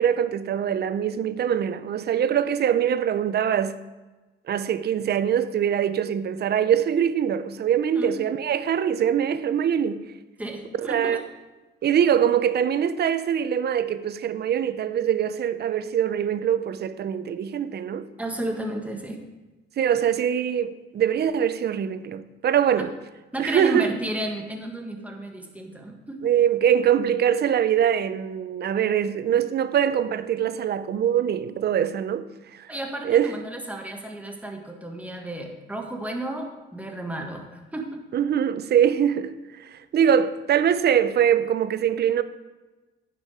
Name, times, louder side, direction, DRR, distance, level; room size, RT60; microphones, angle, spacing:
voice 1, 0.0-3.7 4.5-10.0 10.8-11.2 11.8-18.1 19.8-22.9 23.4-23.9 26.2-32.3 32.5-32.7 33.0-33.4 38.1-42.2, right 9 dB, 55° right, 0.6 m, -23 dB
voice 2, 10.4-11.2 18.2-19.2 22.8-22.9 23.3-26.2 32.7-38.0, right 1 dB, 5° right, 1.6 m, -33 dB
9.8 x 7.1 x 5.0 m
cardioid pair, 90°, 20 cm